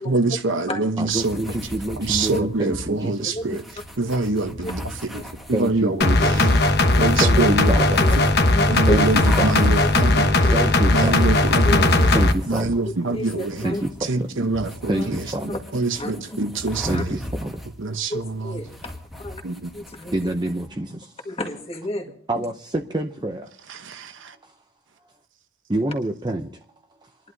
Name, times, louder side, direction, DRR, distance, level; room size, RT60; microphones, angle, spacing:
voice 1, 0.0-1.5 2.0-3.6 4.0-6.6 6.9-8.3 8.7-10.5 10.9-12.1 12.5-13.7 14.0-15.3 15.7-17.2 17.8-18.6 19.4-19.7 23.7-24.4, right 3 dB, 65° right, 1.0 m, -25 dB
voice 2, 1.0-3.0 5.5-6.2 7.2-7.4 7.7-7.8 8.9-9.7 10.5-11.1 12.1-12.6 13.6-13.8 14.9-15.0 15.3-15.5 16.9-17.2 20.1-20.9 22.3-22.5 22.9-23.4 25.7-26.4, right 1 dB, 20° right, 0.6 m, -26 dB
sound 1, 1.1-20.7, equal, ahead, 1.3 m, -38 dB
sound 2, 6.0-12.3, left 2 dB, 50° left, 1.1 m, -18 dB
voice 3, 8.5-8.9 9.8-9.9 10.4-10.7 11.6-12.2 12.8-13.8 14.9-15.1 15.5-15.6 16.0-16.1 16.9-17.0 18.1-19.4 19.7-20.3 21.2-22.1, left 1 dB, 30° left, 1.7 m, -30 dB
28.5 x 11.0 x 2.7 m
head